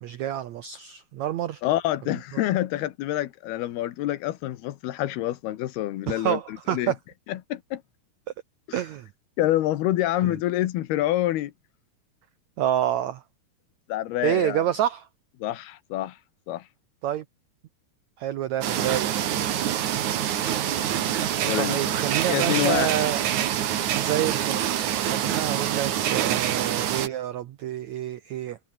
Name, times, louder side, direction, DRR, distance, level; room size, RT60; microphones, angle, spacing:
voice 1, 0.0-1.6 2.3-2.4 6.1-7.0 8.7-9.1 10.2-10.4 12.6-13.2 14.2-15.1 17.0-17.2 18.2-19.1 20.6-23.2 24.0-24.7 25.0-28.6, right 11 dB, 80° right, 1.6 m, -28 dB
voice 2, 1.6-6.9 7.3-7.8 9.4-11.5 13.9-14.6 15.4-16.2 16.5-16.6 21.5-21.9 22.3-23.1, left 14 dB, 90° left, 3.2 m, -27 dB
sound 1, 18.6-27.1, right 10 dB, 60° right, 2.6 m, -26 dB
omnidirectional pair, 4.5 m